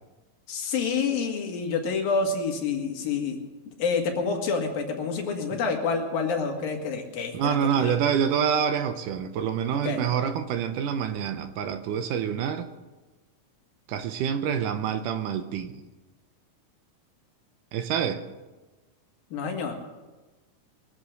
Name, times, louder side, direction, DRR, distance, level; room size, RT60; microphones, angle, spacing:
voice 1, 0.5-3.4 3.7-8.0 9.7-10.0 19.3-19.8, left 5 dB, 80° left, 2 dB, 3.7 m, -28 dB
voice 2, 7.3-12.7 13.9-15.8 17.7-18.2, right 8 dB, 75° right, 9 dB, 2.3 m, -27 dB
23.5 x 8.0 x 6.7 m, 1.2 s
omnidirectional pair, 4.1 m